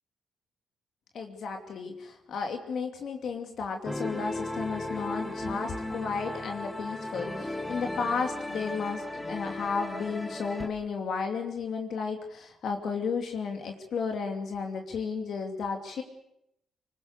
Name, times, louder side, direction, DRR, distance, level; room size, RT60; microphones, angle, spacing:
voice 1, 1.1-16.0, left 5 dB, 60° left, 4 dB, 2.8 m, -33 dB
sound 1, 3.9-10.7, left 1 dB, 10° left, 2.2 m, -36 dB
25.0 x 21.0 x 6.6 m, 0.80 s
cardioid pair, 90°, 0 cm